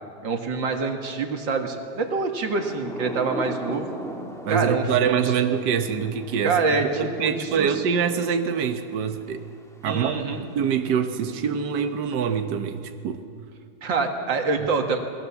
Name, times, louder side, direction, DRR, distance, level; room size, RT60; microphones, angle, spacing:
voice 1, 0.2-3.9 4.5-4.9 5.2-5.3 6.4-7.7 9.8-10.5 13.8-15.0, right 4 dB, 45° right, 4 dB, 2.2 m, -26 dB
Thunder / Rain, 2.2-12.7, equal, ahead, 0.6 m, -41 dB
voice 2, 4.4-9.4 9.8-10.2 10.5-13.2, right 7 dB, 80° right, 6 dB, 0.9 m, -25 dB
29.0 x 19.5 x 7.2 m, 2.3 s
omnidirectional pair, 3.4 m